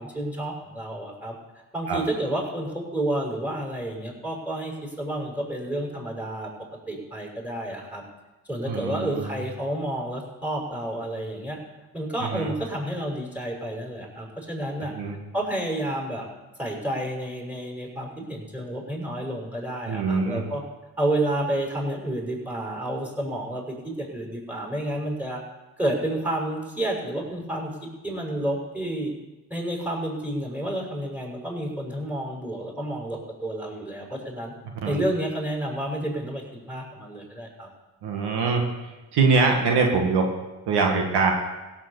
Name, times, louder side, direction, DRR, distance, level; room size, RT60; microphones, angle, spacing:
voice 1, 0.0-1.4 1.7-6.5 6.9-8.0 8.5-11.6 11.9-14.9 15.3-16.3 16.6-20.6 21.0-25.4 25.8-27.7 28.0-29.1 29.5-34.5 34.8-37.7, right 1 dB, 5° right, -1 dB, 6.0 m, -30 dB
voice 2, 8.7-9.4 12.2-12.5 14.8-15.2 19.9-20.4 34.8-35.0 38.0-38.6 39.1-40.3 40.7-41.3, right 4 dB, 85° right, 2 dB, 1.9 m, -23 dB
16.0 x 7.3 x 8.2 m, 1.1 s
supercardioid pair, 50°, 39 cm